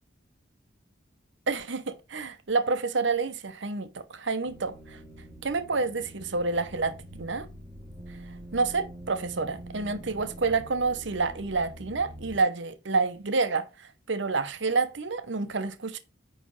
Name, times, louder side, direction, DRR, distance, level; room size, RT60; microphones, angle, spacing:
voice 1, 1.5-5.0 5.4-7.5 8.5-16.0, right 4 dB, 65° right, 0.8 m, -28 dB
sound 1, 4.4-12.4, right 1 dB, 5° left, 2.1 m, -45 dB
9.4 x 3.3 x 5.5 m
head